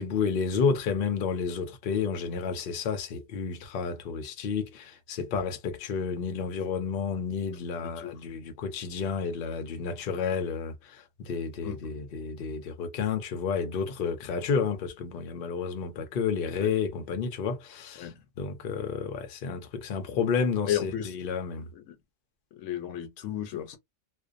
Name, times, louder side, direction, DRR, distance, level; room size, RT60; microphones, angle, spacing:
voice 1, 0.0-18.1 18.4-21.7, left 5 dB, 60° left, 0.6 m, -31 dB
voice 2, 7.8-8.2 11.6-11.9 16.6-16.7 18.0-18.2 20.7-21.1 21.7-22.0 22.5-23.8, left 11 dB, 85° left, 1.0 m, -34 dB
2.5 x 2.1 x 2.5 m
omnidirectional pair, 1.3 m